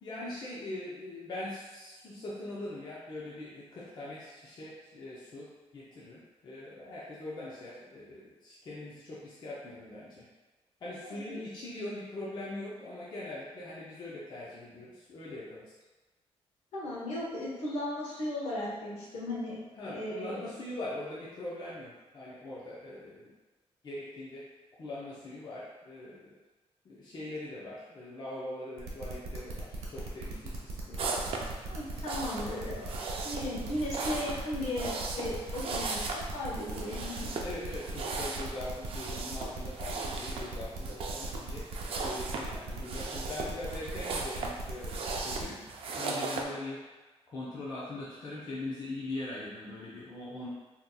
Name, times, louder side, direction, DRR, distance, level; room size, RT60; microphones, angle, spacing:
voice 1, 0.0-5.5 5.7-10.3 10.8-15.7 19.8-23.3 23.8-24.4 24.8-26.3 26.8-31.5 37.4-45.0 45.2-45.6 45.9-46.8 47.3-50.5, left 2 dB, 40° left, -7 dB, 0.5 m, -41 dB
voice 2, 11.0-11.4 16.7-19.6 19.8-20.5 31.7-37.3, left 1 dB, 75° left, -6 dB, 1.0 m, -36 dB
sound 1, 28.8-45.4, right 3 dB, 75° right, 0.8 m, -41 dB
sound 2, 31.0-46.4, right 3 dB, 55° right, 0.4 m, -38 dB
3.8 x 2.7 x 2.3 m, 1.2 s
wide cardioid pair, 175°, 11 cm